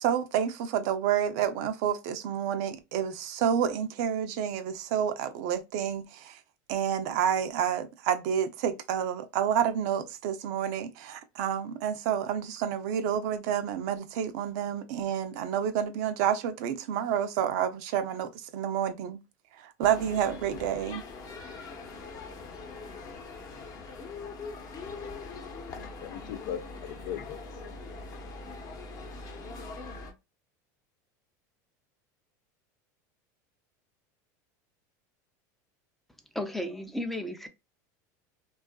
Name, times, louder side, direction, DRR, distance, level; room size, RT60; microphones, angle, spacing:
voice 1, 0.0-6.3 6.7-19.2 19.6-21.0, right 9 dB, 65° right, 0.5 m, -29 dB
sound 1, 19.8-30.1, left 3 dB, 40° left, 0.8 m, -42 dB
voice 2, 25.6-27.7, left 9 dB, 75° left, 0.4 m, -40 dB
voice 3, 36.3-37.5, left 1 dB, ahead, 0.5 m, -33 dB
2.6 x 2.3 x 2.2 m
supercardioid pair, 110°, 10 cm